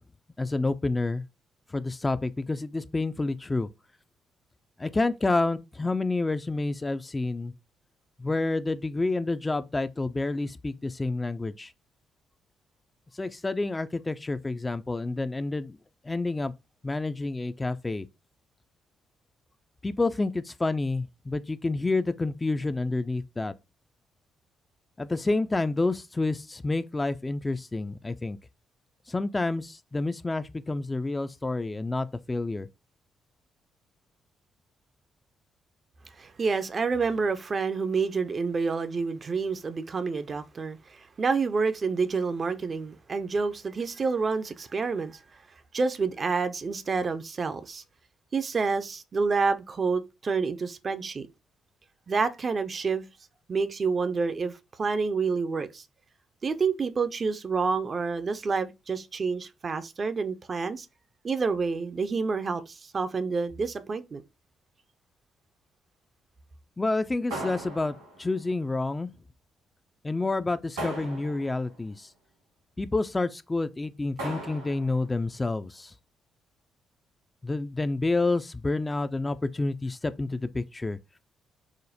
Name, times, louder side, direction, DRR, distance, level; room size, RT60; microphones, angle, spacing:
voice 1, 0.4-1.2 1.7-3.7 4.8-7.5 8.2-11.7 13.2-15.8 16.1-16.5 16.8-18.1 19.8-23.5 25.0-28.4 29.1-32.7 66.8-69.1 70.0-72.1 72.8-75.9 77.4-81.0, left 2 dB, 25° left, 0.3 m, -29 dB
voice 2, 36.2-45.2 45.7-47.8 48.3-51.3 52.1-53.0 53.5-55.8 56.4-60.9 61.2-64.2, right 4 dB, 40° right, 0.4 m, -28 dB
sound 1, 67.3-68.4 70.8-71.7 74.2-75.0, right 1 dB, 85° right, 1.9 m, -37 dB
4.9 x 2.0 x 2.7 m
hypercardioid pair, 40°, 0 cm